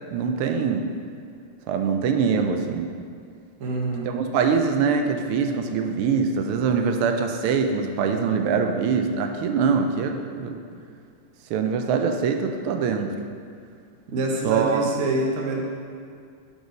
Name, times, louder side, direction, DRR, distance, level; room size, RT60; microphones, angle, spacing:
voice 1, 0.1-0.9 1.7-2.9 4.0-10.6 11.5-13.1 14.4-14.9, right 6 dB, 85° right, 5 dB, 1.5 m, -23 dB
voice 2, 3.6-4.1 14.1-15.6, right 2 dB, 50° right, -1 dB, 1.0 m, -25 dB
6.3 x 5.4 x 5.1 m, 2.3 s
omnidirectional pair, 2.4 m